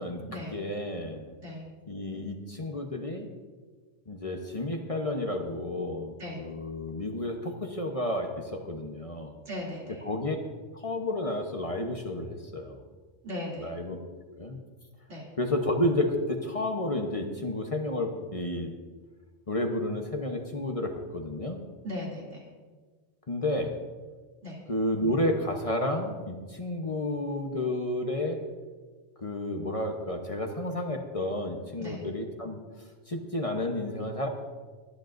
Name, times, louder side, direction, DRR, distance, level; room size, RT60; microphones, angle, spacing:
voice 1, 0.0-1.3 1.9-3.3 4.1-9.3 10.0-10.4 10.7-12.8 13.6-14.0 14.3-14.6 15.4-18.7 19.5-21.6 23.3-23.8 24.7-28.4 29.2-32.6 33.1-34.3, left 1 dB, 30° left, 3 dB, 1.0 m, -31 dB
voice 2, 9.5-10.0 13.2-13.7 15.1-15.3 21.8-22.4 24.4-24.6 31.8-32.0, left 1 dB, 90° right, -4 dB, 3.2 m, -37 dB
21.5 x 10.5 x 2.6 m, 1.4 s
omnidirectional pair, 1.2 m